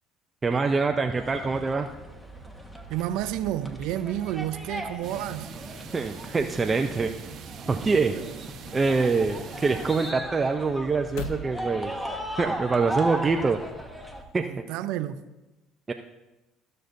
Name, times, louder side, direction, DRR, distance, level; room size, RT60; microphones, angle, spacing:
voice 1, 0.4-1.9 5.9-7.1 7.7-8.1 8.7-11.9 12.4-13.6 14.3-14.4 15.9-16.0, right 4 dB, 25° right, 0.5 m, -25 dB
sound 1, 1.2-14.2, right 1 dB, 10° left, 1.2 m, -37 dB
voice 2, 2.9-5.5 8.1-8.2 14.4-15.2, right 12 dB, 75° right, 0.5 m, -30 dB
sound 2, 5.0-10.1, right 6 dB, 55° right, 0.9 m, -42 dB
sound 3, 9.9-13.2, left 3 dB, 75° left, 0.8 m, -44 dB
14.5 x 6.6 x 2.6 m
supercardioid pair, 85°, 0 cm